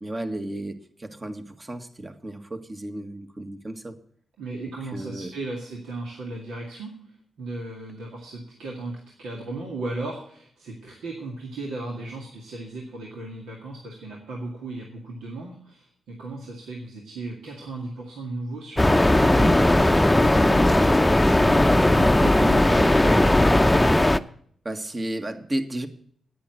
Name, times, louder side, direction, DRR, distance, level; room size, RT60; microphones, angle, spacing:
voice 1, 0.0-4.0 4.8-5.3 24.7-25.9, right 1 dB, 35° right, 7 dB, 1.7 m, -33 dB
voice 2, 4.4-23.4, right 2 dB, 85° right, -1 dB, 2.1 m, -36 dB
sound 1, 18.8-24.2, left 1 dB, 15° left, 0.7 m, -18 dB
10.5 x 9.2 x 7.7 m, 0.63 s
supercardioid pair, 45°, 0 cm